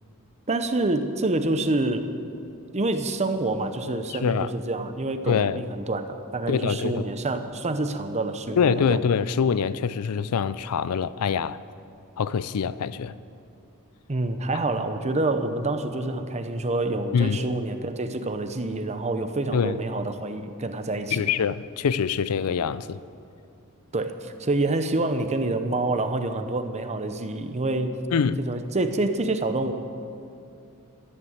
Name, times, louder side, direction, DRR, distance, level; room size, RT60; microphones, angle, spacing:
voice 1, 0.5-2.1 2.7-9.0 14.1-21.2 23.9-28.0 28.4-29.7, right 2 dB, 30° right, 8 dB, 0.8 m, -27 dB
voice 2, 4.1-4.5 5.3-5.6 6.5-7.1 8.6-11.6 12.2-13.1 17.1-17.4 19.5-19.8 21.1-23.0 28.1-28.4, left 6 dB, 80° left, 16 dB, 0.4 m, -24 dB
13.0 x 11.0 x 8.0 m, 2.6 s
head